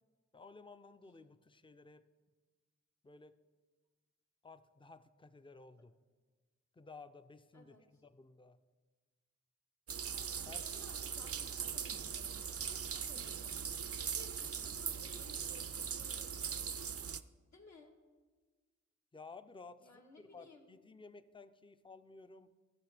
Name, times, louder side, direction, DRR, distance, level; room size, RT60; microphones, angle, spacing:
voice 1, 0.3-2.0 3.0-3.4 4.4-5.9 6.8-8.6 10.4-10.8 19.1-22.5, left 4 dB, 15° left, 11 dB, 0.5 m, -55 dB
voice 2, 7.5-8.0 10.6-16.8 17.5-17.9 19.8-20.7, left 2 dB, 65° left, 0 dB, 1.8 m, -60 dB
sound 1, 9.9-17.2, right 7 dB, 50° right, 0.5 m, -40 dB
14.5 x 6.0 x 4.9 m, 1.4 s
cardioid pair, 50°, 30 cm